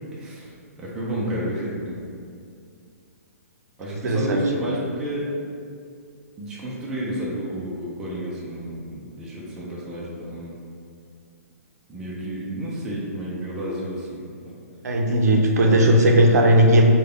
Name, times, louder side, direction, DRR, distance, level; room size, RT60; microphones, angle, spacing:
voice 1, 0.1-0.5 0.8-2.0 3.8-5.3 6.4-10.6 11.9-14.6 15.5-16.1, equal, 5° right, -7 dB, 0.3 m, -31 dB
voice 2, 4.0-4.4 14.8-16.8, right 1 dB, 85° right, 2 dB, 0.5 m, -17 dB
3.4 x 2.2 x 3.7 m, 2.3 s
hypercardioid pair, 170°, 9 cm